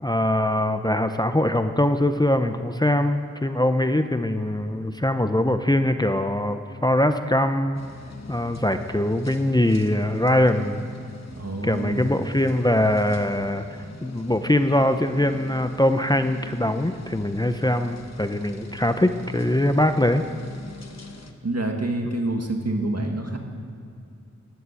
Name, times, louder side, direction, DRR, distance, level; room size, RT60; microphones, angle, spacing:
voice 1, 0.0-7.8 8.3-10.8 11.6-13.6 14.0-20.2, left 1 dB, 15° left, 8 dB, 0.7 m, -22 dB
sound 1, 7.7-21.3, left 3 dB, 55° left, 1.3 m, -42 dB
voice 2, 11.4-12.1 21.4-23.4, right 2 dB, 55° right, 3 dB, 1.9 m, -27 dB
12.5 x 11.0 x 8.4 m, 2.5 s
wide cardioid pair, 55°, 31 cm